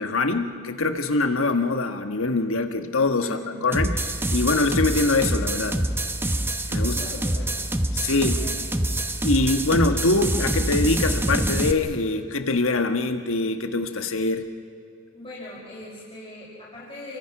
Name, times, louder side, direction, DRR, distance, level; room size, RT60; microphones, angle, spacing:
voice 1, 0.0-4.0 4.3-5.8 6.7-7.0 7.9-8.4 9.2-14.4, left 3 dB, 70° left, 7 dB, 1.5 m, -23 dB
voice 2, 3.1-3.7 6.8-7.6 8.2-8.6 15.1-17.2, left 1 dB, 25° left, -6 dB, 5.5 m, -40 dB
sound 1, 3.7-11.7, right 1 dB, 10° right, 1.1 m, -25 dB
29.0 x 24.0 x 6.1 m, 2.5 s
head